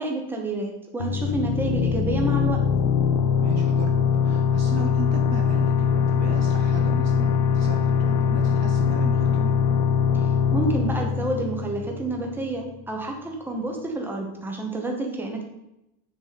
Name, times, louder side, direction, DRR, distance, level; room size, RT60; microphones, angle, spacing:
voice 1, 0.0-2.6 10.1-15.4, right 2 dB, 5° right, 1 dB, 1.0 m, -29 dB
sound 1, 1.0-12.4, left 7 dB, 90° left, 1.0 m, -22 dB
voice 2, 3.4-9.6, right 5 dB, 35° right, 4 dB, 0.8 m, -35 dB
7.2 x 6.9 x 4.1 m, 0.89 s
cardioid pair, 160°, 44 cm